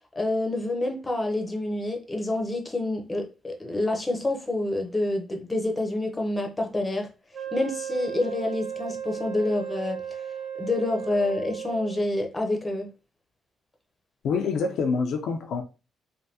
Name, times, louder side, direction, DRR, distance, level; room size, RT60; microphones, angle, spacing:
voice 1, 0.2-7.1 7.5-10.0 10.6-12.9, left 2 dB, 20° left, 0.7 m, -27 dB
Wind instrument woodwind instrument, 7.3-12.1, right 8 dB, 50° right, 0.3 m, -35 dB
voice 2, 14.2-15.6, left 5 dB, 75° left, 0.5 m, -26 dB
3.3 x 2.2 x 2.8 m
cardioid pair, 90°, 0 cm